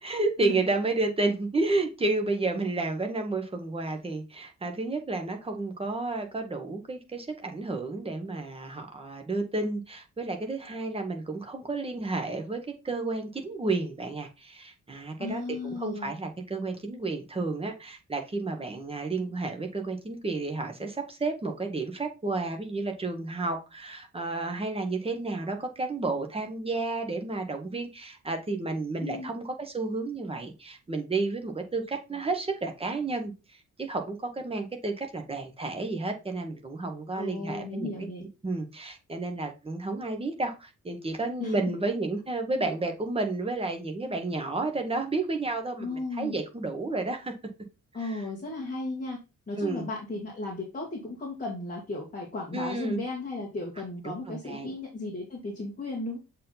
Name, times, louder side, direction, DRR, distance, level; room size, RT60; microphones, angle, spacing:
voice 1, 0.0-38.1 38.4-47.3 48.0-48.2 49.6-49.9 52.5-53.0 54.0-54.7, right 3 dB, 20° right, 1.2 m, -31 dB
voice 2, 15.2-16.1 29.0-29.3 37.2-38.3 41.4-41.5 45.8-46.4 47.9-49.2 49.5-56.2, left 2 dB, 25° left, 1.8 m, -35 dB
7.2 x 4.6 x 4.0 m
wide cardioid pair, 165°, 30 cm